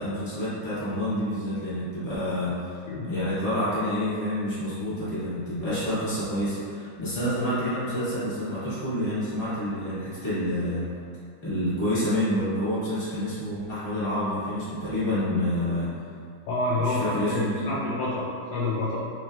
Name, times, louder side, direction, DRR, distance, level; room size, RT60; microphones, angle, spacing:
voice 1, 0.0-2.8 3.0-10.8 11.4-15.9 16.8-17.7, left 1 dB, 25° left, -11 dB, 1.1 m, -28 dB
voice 2, 16.5-19.0, left 2 dB, 75° left, -8 dB, 1.1 m, -28 dB
3.2 x 3.2 x 2.3 m, 2.3 s
omnidirectional pair, 2.0 m